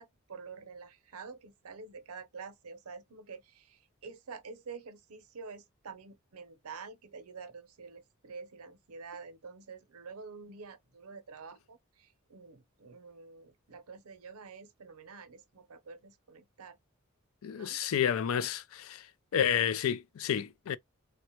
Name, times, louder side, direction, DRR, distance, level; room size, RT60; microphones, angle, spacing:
voice 1, 0.0-16.8 17.5-17.8, right 5 dB, 85° right, 0.6 m, -48 dB
voice 2, 17.4-19.0 19.3-20.8, left 8 dB, 70° left, 0.3 m, -30 dB
3.3 x 2.1 x 2.8 m
head